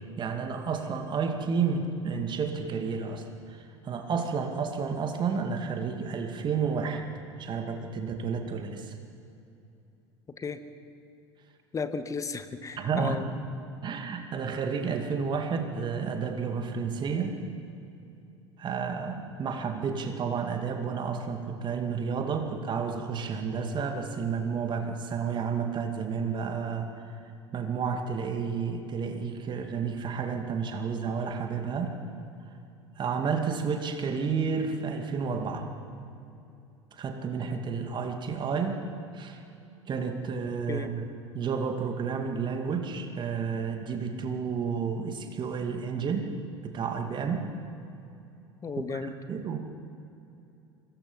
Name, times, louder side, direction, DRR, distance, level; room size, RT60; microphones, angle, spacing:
voice 1, 0.0-3.6 3.8-7.0 7.4-9.0 12.8-13.2 13.8-17.4 18.6-26.9 27.5-31.9 33.0-35.7 37.0-38.8 39.1-39.4 39.9-41.1 41.3-46.3 46.6-47.5 48.8-49.6, right 5 dB, 30° right, 5 dB, 2.3 m, -31 dB
voice 2, 11.7-13.2 40.7-40.9 48.6-49.1, left 5 dB, 20° left, 10 dB, 1.5 m, -34 dB
25.0 x 21.0 x 5.7 m, 2.8 s
figure-of-eight pair, 75°, 15 cm